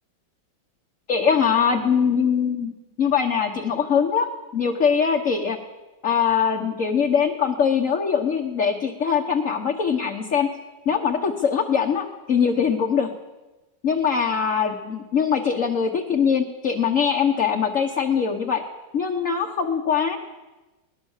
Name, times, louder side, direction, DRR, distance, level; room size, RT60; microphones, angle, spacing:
voice 1, 1.1-2.7 3.0-4.3 4.5-5.6 6.0-10.5 10.8-13.1 13.8-18.6 18.9-20.2, left 6 dB, 45° left, 2 dB, 1.6 m, -22 dB
21.0 x 19.0 x 7.3 m, 1.1 s
omnidirectional pair, 2.0 m